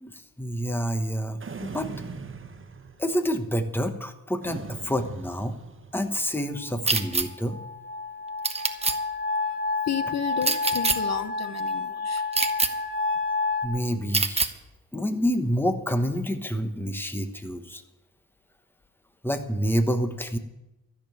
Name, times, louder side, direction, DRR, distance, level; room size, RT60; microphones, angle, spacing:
voice 1, 0.0-1.9 3.0-5.6 5.9-7.6 13.6-14.5 14.9-17.8 19.2-20.4, equal, 5° left, 7 dB, 1.2 m, -28 dB
sound 1, 1.4-3.3 4.4-6.2, right 5 dB, 40° right, 1.4 m, -40 dB
sound 2, 6.5-13.7, left 3 dB, 40° left, 2.4 m, -29 dB
sound 3, 6.9-7.3 8.4-9.0 10.4-11.0 12.3-12.7 14.1-14.5, right 3 dB, 20° right, 1.0 m, -23 dB
voice 2, 9.9-12.3, left 8 dB, 55° left, 10 dB, 1.0 m, -32 dB
13.5 x 7.0 x 9.4 m, 0.94 s
cardioid pair, 100°, 31 cm